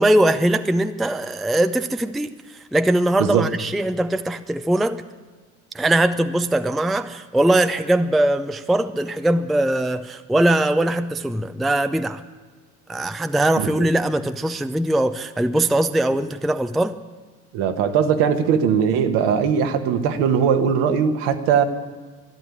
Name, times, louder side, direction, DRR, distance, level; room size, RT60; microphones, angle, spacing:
voice 1, 0.0-5.0 5.7-12.2 12.9-17.0, right 1 dB, ahead, 10 dB, 0.4 m, -21 dB
voice 2, 13.6-13.9 17.5-21.6, right 7 dB, 65° right, 7 dB, 1.4 m, -20 dB
12.5 x 11.5 x 10.0 m, 1.4 s
figure-of-eight pair, 60°, 45 cm